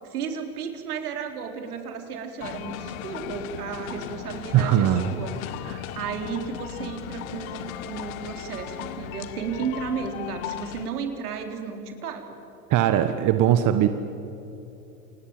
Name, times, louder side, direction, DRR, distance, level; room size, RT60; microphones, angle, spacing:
voice 1, 0.0-5.6 5.9-12.4, right 6 dB, 80° right, 5 dB, 3.9 m, -33 dB
sound 1, 2.4-10.9, left 11 dB, 65° left, 1.5 m, -37 dB
voice 2, 4.5-5.1 5.6-5.9 12.7-13.9, right 11 dB, 40° right, 9 dB, 1.5 m, -20 dB
28.5 x 20.0 x 9.0 m, 2.9 s
hypercardioid pair, 95°, 45 cm